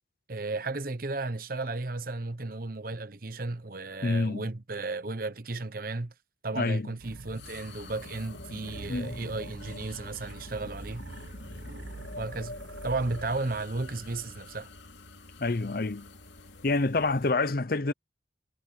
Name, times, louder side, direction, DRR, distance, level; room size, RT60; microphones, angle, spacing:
voice 1, 0.3-6.1 6.4-11.1 12.1-12.6 12.8-14.7, right 3 dB, 50° right, 1.1 m, -34 dB
voice 2, 4.0-4.5 6.6-6.9 8.9-9.2 15.4-16.1 16.6-17.9, left 3 dB, 50° left, 0.7 m, -27 dB
sound 1, 7.0-16.8, left 2 dB, 70° left, 3.0 m, -47 dB
sound 2, 7.0-8.1 8.6-14.6, right 2 dB, 80° right, 1.0 m, -46 dB
sound 3, 7.4-17.3, left 1 dB, 90° left, 3.0 m, -53 dB
head